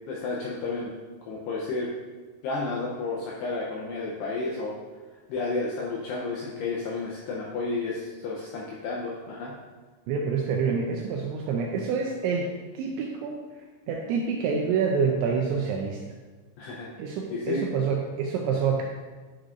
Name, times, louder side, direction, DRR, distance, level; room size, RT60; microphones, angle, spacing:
voice 1, 0.1-0.9 1.2-1.9 2.4-4.8 5.3-9.6 16.6-16.9 17.3-17.7, left 3 dB, 85° left, -3 dB, 2.3 m, -31 dB
voice 2, 10.1-16.0 17.0-18.8, right 5 dB, 80° right, 0 dB, 2.7 m, -27 dB
10.0 x 6.5 x 2.5 m, 1.3 s
omnidirectional pair, 5.7 m